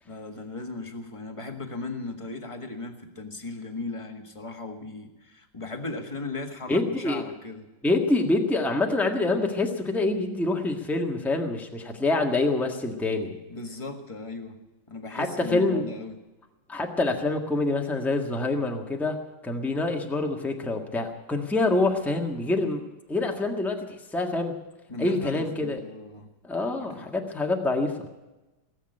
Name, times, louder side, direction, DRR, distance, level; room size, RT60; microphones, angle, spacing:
voice 1, 0.1-7.6 13.5-14.6 14.9-16.1 24.9-26.3 26.8-27.1, left 3 dB, 15° left, 4 dB, 1.4 m, -37 dB
voice 2, 6.7-7.2 7.8-13.4 15.1-15.8 16.7-19.2 19.4-22.8 23.1-24.6 25.0-25.8 26.4-28.1, left 2 dB, ahead, 2 dB, 1.2 m, -26 dB
18.0 x 8.0 x 9.9 m, 1.1 s
omnidirectional pair, 2.4 m